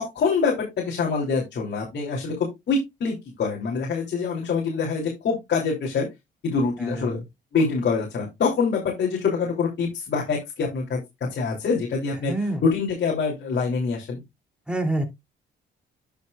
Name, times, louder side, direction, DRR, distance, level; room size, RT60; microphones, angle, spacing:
voice 1, 0.0-6.1 6.4-7.2 7.5-11.0 11.3-14.2, left 4 dB, 60° left, 0 dB, 3.1 m, -25 dB
voice 2, 6.8-7.2 12.3-12.6 14.7-15.1, right 1 dB, 5° right, 4 dB, 2.9 m, -27 dB
10.5 x 6.3 x 2.4 m, 0.20 s
cardioid pair, 90°, 20 cm